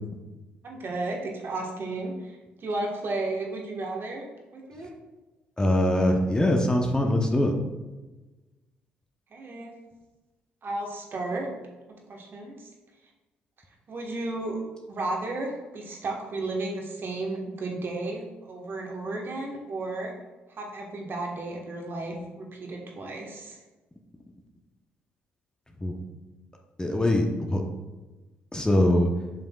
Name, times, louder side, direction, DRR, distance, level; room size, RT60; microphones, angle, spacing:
voice 1, 0.6-4.3 4.5-4.9 9.3-9.7 10.6-11.5 12.1-12.7 13.9-14.6 14.9-20.1 20.6-23.6, right 2 dB, 45° right, 0 dB, 1.4 m, -33 dB
voice 2, 5.6-7.5 25.8-26.0 26.8-27.6 28.5-29.1, left 1 dB, 15° left, 2 dB, 0.8 m, -22 dB
7.5 x 5.4 x 2.4 m, 1.2 s
hypercardioid pair, 50°, 5 cm